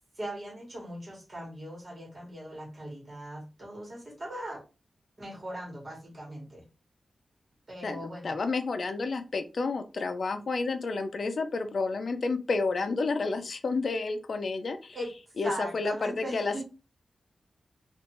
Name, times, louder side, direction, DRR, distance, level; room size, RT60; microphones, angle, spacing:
voice 1, 0.1-4.6 5.2-6.6 7.7-8.4 14.9-15.1 15.4-16.6, right 1 dB, 30° right, -2 dB, 1.4 m, -39 dB
voice 2, 7.8-15.0 15.4-16.6, left 3 dB, 55° left, 8 dB, 0.5 m, -30 dB
3.3 x 2.5 x 3.0 m, 0.30 s
wide cardioid pair, 155°, 0 cm